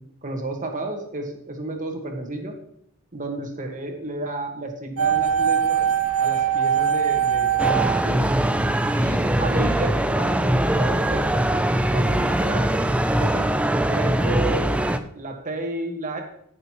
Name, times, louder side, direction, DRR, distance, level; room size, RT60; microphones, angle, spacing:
voice 1, 0.0-2.5 3.1-5.9 6.2-8.3 8.9-11.5 11.9-12.7 13.1-13.4 13.9-16.2, right 2 dB, 35° right, 2 dB, 1.6 m, -32 dB
sound 1, 5.0-9.1 9.3-9.4, right 8 dB, 80° right, 0.7 m, -22 dB
sound 2, 7.6-15.0, right 1 dB, 5° right, 0.4 m, -22 dB
16.0 x 6.6 x 3.1 m, 0.72 s
head